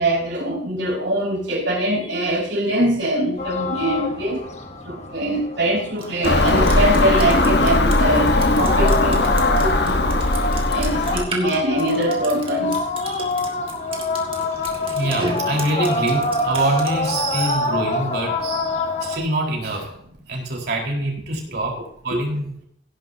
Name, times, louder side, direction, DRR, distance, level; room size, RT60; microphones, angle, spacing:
voice 1, 0.0-4.4 4.9-10.2 10.7-12.7 13.0-13.3, right 1 dB, 75° right, 5.5 m, -23 dB
sound 1, 3.4-19.2, left 2 dB, 35° left, 1.6 m, -27 dB
Drip, 6.0-17.3, right 3 dB, 30° right, 2.3 m, -35 dB
Car passing by / Engine, 6.2-11.2, left 2 dB, 60° left, 1.2 m, -18 dB
voice 2, 14.7-20.0 20.3-22.5, right 1 dB, 55° right, 4.3 m, -25 dB
17.0 x 11.0 x 2.8 m
head